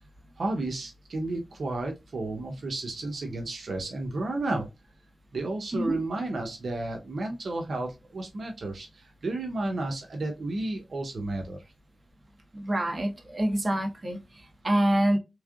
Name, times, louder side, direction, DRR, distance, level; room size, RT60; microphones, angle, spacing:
voice 1, 0.4-4.7 5.3-11.6, right 2 dB, 75° right, 2 dB, 0.9 m, -32 dB
voice 2, 12.5-14.2 14.6-15.2, right 1 dB, 40° right, 3 dB, 1.1 m, -26 dB
3.6 x 3.2 x 2.4 m, 0.23 s
cardioid pair, 60°, 0 cm